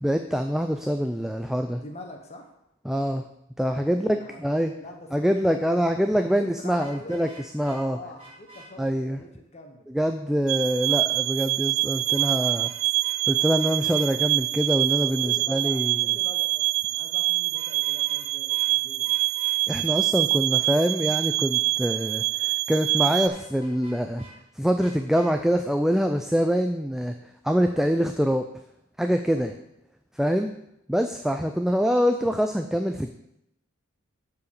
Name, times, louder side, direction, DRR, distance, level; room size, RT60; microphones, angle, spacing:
voice 1, 0.0-1.8 2.9-3.2 3.6-4.7 5.1-7.3 7.5-8.0 8.8-9.2 9.9-12.7 13.3-15.9 19.7-24.2 24.6-27.1 27.4-28.5 29.0-29.5 30.2-30.5 30.9-33.1, equal, ahead, 6 dB, 0.3 m, -24 dB
voice 2, 1.7-2.5 3.9-4.4 4.8-5.8 6.2-7.2 7.9-9.9 15.0-19.2 29.3-29.7, left 2 dB, 30° left, 4 dB, 1.0 m, -44 dB
Vehicle horn car horn honking, 6.8-7.8 8.2-8.7 12.1-12.8 13.0-13.1 13.6-14.0 17.5-18.2 18.5-18.7 19.0-19.5 23.3-24.3 24.8-25.3, right 2 dB, 30° right, 4.0 m, -48 dB
sound 1, 10.5-23.3, right 20 dB, 70° right, 0.4 m, -25 dB
7.8 x 4.8 x 6.9 m, 0.80 s
head